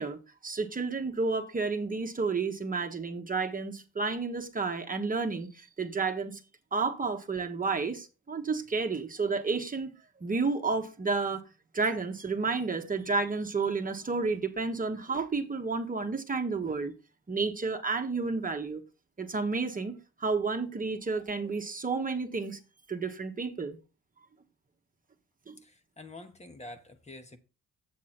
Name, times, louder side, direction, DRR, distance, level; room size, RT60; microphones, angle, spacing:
voice 1, 0.0-6.4 6.7-9.9 10.2-11.4 11.7-16.9 17.3-18.8 19.2-22.6 22.9-23.8 25.5-25.6, right 4 dB, 25° right, 1.3 m, -31 dB
voice 2, 25.6-27.4, left 2 dB, 20° left, 1.3 m, -47 dB
7.7 x 7.3 x 4.3 m
cardioid pair, 90°, 30 cm